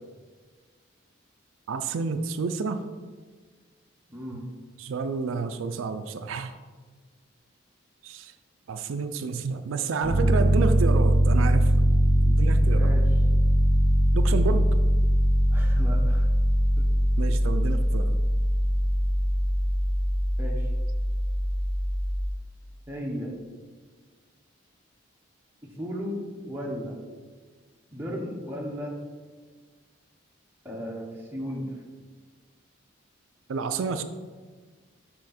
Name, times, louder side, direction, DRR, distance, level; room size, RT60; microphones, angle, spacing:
voice 1, 1.7-2.8 4.3-4.4 4.8-6.5 8.0-8.3 8.7-11.7 12.2-13.0 14.1-14.7 17.2-18.2 33.5-34.0, right 4 dB, 80° right, 9 dB, 0.4 m, -30 dB
voice 2, 4.1-4.4 12.7-13.0 15.5-16.3 16.8-16.9 20.4-20.7 22.9-23.3 25.6-27.0 27.9-28.9 30.6-31.7, equal, 10° right, -2 dB, 1.1 m, -35 dB
Piano, 10.0-22.2, equal, 40° left, 2.0 m, -22 dB
6.4 x 5.6 x 4.2 m, 1.5 s
head